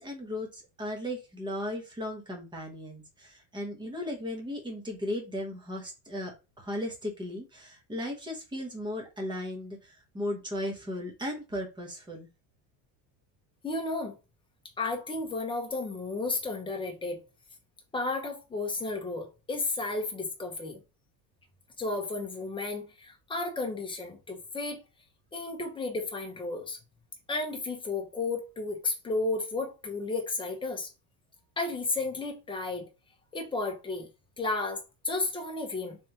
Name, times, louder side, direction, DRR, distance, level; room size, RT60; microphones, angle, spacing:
voice 1, 0.0-12.3, left 1 dB, 10° right, 1.1 m, -36 dB
voice 2, 13.6-14.2 14.8-17.2 17.9-20.8 21.8-24.8 25.3-26.8 27.3-30.9 31.6-32.9 33.3-34.1 34.4-36.0, left 3 dB, 10° left, 1.0 m, -33 dB
3.4 x 3.4 x 2.9 m
cardioid pair, 140°, 42 cm